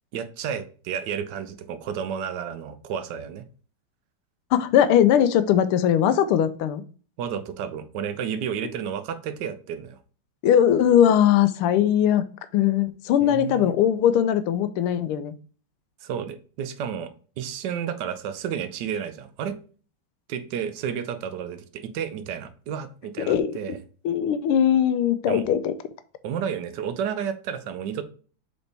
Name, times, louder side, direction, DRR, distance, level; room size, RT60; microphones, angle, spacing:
voice 1, 0.1-3.4 7.2-10.0 13.2-13.7 16.0-17.1 17.4-19.6 20.3-23.8 25.3-25.4 26.2-28.0, right 8 dB, 65° right, 11 dB, 1.1 m, -31 dB
voice 2, 4.5-6.8 10.4-12.2 12.5-15.3 23.3-23.5 24.0-25.7, left 10 dB, 85° left, 12 dB, 1.5 m, -20 dB
6.9 x 4.2 x 3.4 m, 0.39 s
omnidirectional pair, 2.4 m